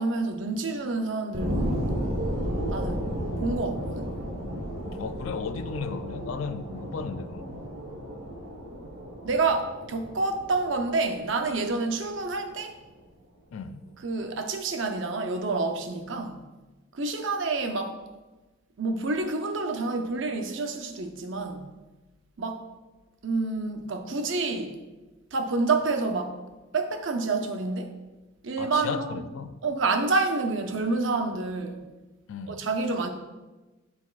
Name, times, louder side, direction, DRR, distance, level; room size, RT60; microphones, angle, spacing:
voice 1, 0.0-2.0 2.7-3.1 3.4-4.1 9.2-12.7 14.0-16.4 16.9-18.0 18.8-21.7 22.4-22.6 23.2-24.8 25.3-26.4 26.7-27.9 28.4-29.2 29.6-31.8 32.5-33.1, right 3 dB, 65° right, 0.7 m, -28 dB
sound 1, 1.3-12.3 12.8-12.9, equal, 80° right, 1.3 m, -33 dB
voice 2, 5.0-7.7 13.5-13.9 28.6-29.6 32.3-32.6, left 5 dB, 75° left, 0.4 m, -35 dB
12.5 x 4.2 x 2.4 m
head